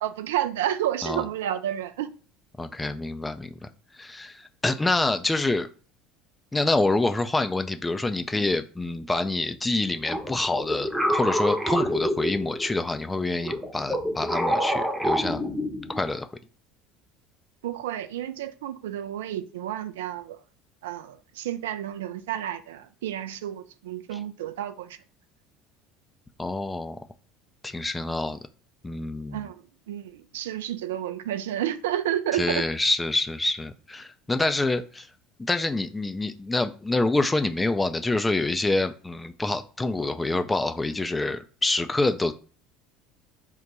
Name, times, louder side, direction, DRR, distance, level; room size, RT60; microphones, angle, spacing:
voice 1, 0.0-2.1 17.6-20.4 20.8-25.0 29.3-32.7, right 11 dB, 70° right, 0.3 m, -30 dB
voice 2, 2.6-3.7 4.0-5.7 6.5-15.4 16.0-16.3 26.4-27.0 27.6-28.4 28.8-29.4 32.3-35.1 35.4-42.3, left 2 dB, 15° left, 0.3 m, -26 dB
sound 1, 10.1-12.8 13.4-16.1, equal, 5° right, 0.8 m, -27 dB
3.8 x 2.2 x 4.1 m
figure-of-eight pair, 65°, 0 cm